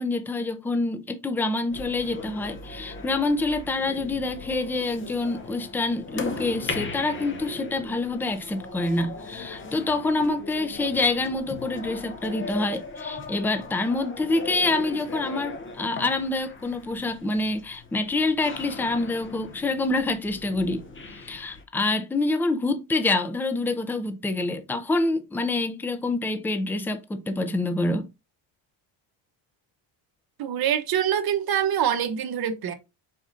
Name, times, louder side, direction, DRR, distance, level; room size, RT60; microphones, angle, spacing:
voice 1, 0.0-20.8 21.1-28.1, left 2 dB, 5° left, 0.3 m, -26 dB
sound 1, 1.7-21.6, left 3 dB, 25° left, 0.7 m, -38 dB
voice 2, 30.4-32.7, right 9 dB, 50° right, 0.9 m, -25 dB
4.7 x 4.2 x 2.5 m
cardioid pair, 130°, 47 cm